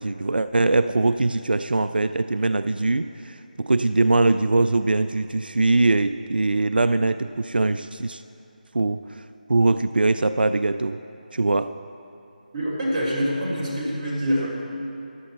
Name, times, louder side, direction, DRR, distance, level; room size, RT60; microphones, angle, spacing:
voice 1, 0.0-8.2 8.7-9.0 9.5-11.0 11.3-11.8, right 2 dB, 90° right, 11 dB, 0.3 m, -22 dB
voice 2, 12.5-14.5, equal, 25° right, -8 dB, 3.2 m, -25 dB
14.0 x 10.5 x 4.1 m, 2.7 s
figure-of-eight pair, 165°, 5 cm